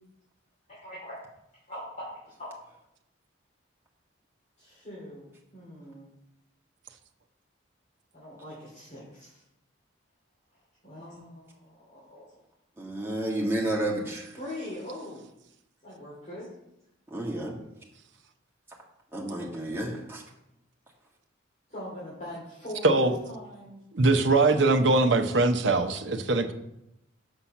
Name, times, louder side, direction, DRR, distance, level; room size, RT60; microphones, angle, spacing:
voice 1, 0.7-1.1 1.7-2.5 4.6-6.1 8.1-9.4 10.8-12.3 14.4-15.2 15.8-16.5 21.7-23.8 24.7-25.1, left 1 dB, 40° left, -7 dB, 2.6 m, -42 dB
voice 2, 12.8-14.3 17.1-17.5 19.1-20.2, right 1 dB, 10° right, -3 dB, 1.7 m, -31 dB
voice 3, 23.9-26.5, right 2 dB, 65° right, 6 dB, 0.8 m, -22 dB
6.8 x 5.7 x 5.9 m, 0.84 s
head